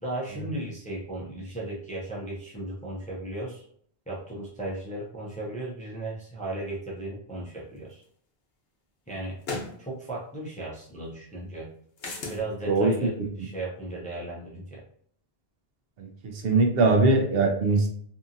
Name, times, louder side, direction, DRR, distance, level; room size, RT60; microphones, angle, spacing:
voice 1, 0.0-3.6 4.1-8.0 9.1-9.4 9.8-11.7 12.3-14.8, right 2 dB, 10° left, -4 dB, 0.4 m, -36 dB
sound 1, 8.0-8.1 9.4-9.8 12.0-12.4, left 3 dB, 75° left, 0.9 m, -34 dB
voice 2, 16.0-17.9, right 3 dB, 75° right, 3 dB, 0.8 m, -21 dB
2.7 x 2.6 x 2.5 m, 0.63 s
omnidirectional pair, 1.0 m